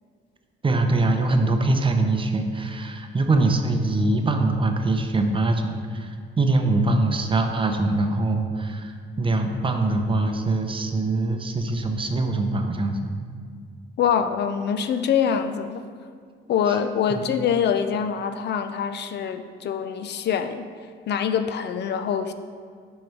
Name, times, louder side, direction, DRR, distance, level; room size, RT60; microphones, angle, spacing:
voice 1, 0.6-13.1 16.7-16.8 17.1-17.3, right 2 dB, 25° right, 5 dB, 0.6 m, -23 dB
voice 2, 14.0-15.8 16.5-20.7 21.1-22.3, left 7 dB, 60° left, 9 dB, 0.4 m, -24 dB
5.4 x 4.8 x 4.6 m, 2.1 s
cardioid pair, 90°, 20 cm